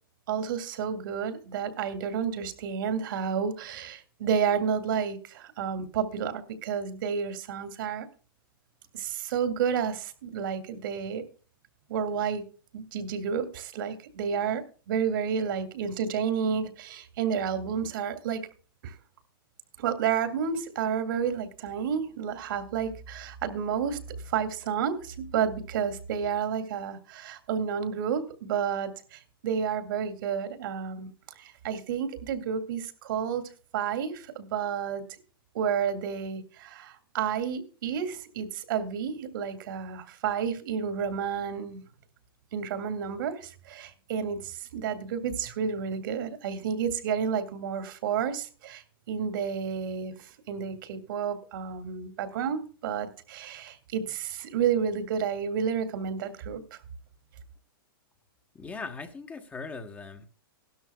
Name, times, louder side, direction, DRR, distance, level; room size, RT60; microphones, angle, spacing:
voice 1, 0.3-8.1 8.9-11.2 11.9-12.4 12.7-18.4 18.8-18.9 19.8-24.0 24.3-31.1 31.4-33.4 33.7-35.0 35.5-41.8 42.5-56.8, right 7 dB, 65° right, 9 dB, 2.2 m, -31 dB
voice 2, 58.5-60.3, left 4 dB, 10° left, 7 dB, 1.1 m, -39 dB
16.5 x 12.5 x 2.2 m, 0.37 s
hypercardioid pair, 145°, 12 cm